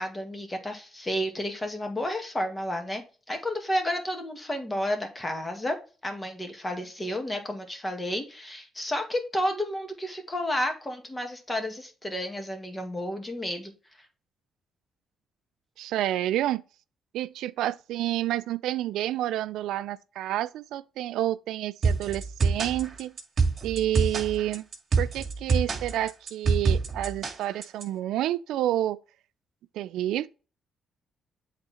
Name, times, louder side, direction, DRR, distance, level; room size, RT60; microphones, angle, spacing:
voice 1, 0.0-5.8 6.0-13.7, equal, 20° left, 1.9 m, -31 dB
voice 2, 15.8-16.6 17.1-23.1 23.6-24.7 25.0-29.0 29.7-30.3, right 13 dB, 85° right, 0.3 m, -29 dB
sound 1, 21.8-27.8, right 4 dB, 45° right, 2.1 m, -26 dB
8.1 x 3.8 x 4.3 m
cardioid pair, 90°, 0 cm